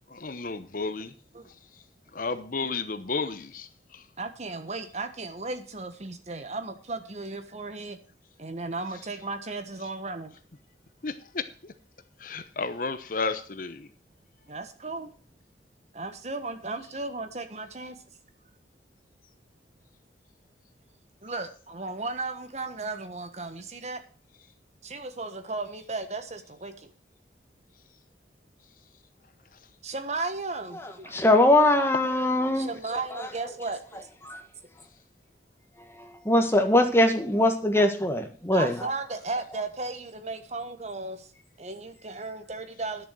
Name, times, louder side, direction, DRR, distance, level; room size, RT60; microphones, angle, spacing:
voice 1, 0.1-1.1 2.1-4.0 11.0-11.4 12.2-13.9, left 4 dB, 50° left, 0.9 m, -32 dB
voice 2, 4.2-8.0 8.4-10.3 14.5-15.1 15.9-18.0 21.2-24.0 24.8-26.9 29.8-31.2 32.5-34.0 38.5-41.3 41.6-43.1, right 3 dB, 40° right, 1.3 m, -35 dB
voice 3, 31.1-32.7 34.3-34.4 36.0-38.8, left 1 dB, 15° left, 1.6 m, -21 dB
11.0 x 6.8 x 7.5 m
head